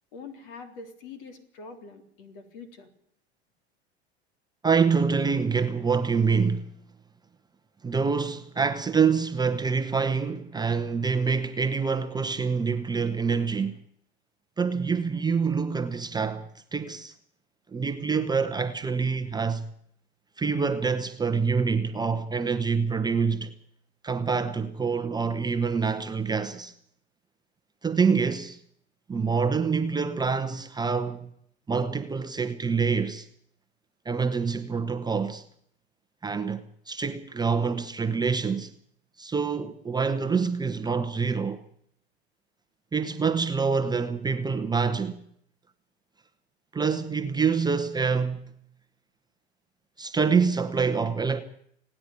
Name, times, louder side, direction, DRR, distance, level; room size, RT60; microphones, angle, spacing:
voice 1, 0.1-2.9, left 4 dB, 55° left, 3.7 m, -44 dB
voice 2, 4.6-6.7 7.8-13.8 14.6-17.1 17.7-19.7 20.4-23.5 24.0-26.7 27.8-28.6 29.1-31.3 31.7-33.3 34.0-35.4 36.2-38.7 39.2-41.6 42.9-45.2 46.7-48.5 50.0-51.4, right 5 dB, 10° right, 1.0 m, -26 dB
29.0 x 10.0 x 9.0 m
figure-of-eight pair, 85°, 33 cm